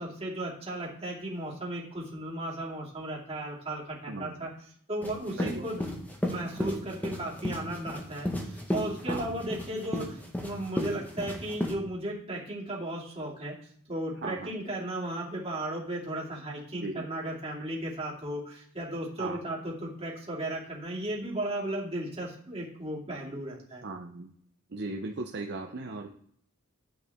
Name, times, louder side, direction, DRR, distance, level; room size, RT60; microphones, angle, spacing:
voice 1, 0.0-4.5 4.9-5.8 6.2-13.5 13.9-23.8, right 1 dB, 30° right, -4 dB, 2.6 m, -35 dB
voice 2, 4.1-4.5 5.4-5.7 9.1-9.3 14.2-14.5 16.8-17.0 19.2-19.5 23.8-24.3 24.7-26.1, right 3 dB, 50° right, 3 dB, 0.6 m, -37 dB
sound 1, 5.0-11.7, left 1 dB, 10° left, 1.3 m, -33 dB
9.7 x 7.8 x 3.6 m, 0.65 s
head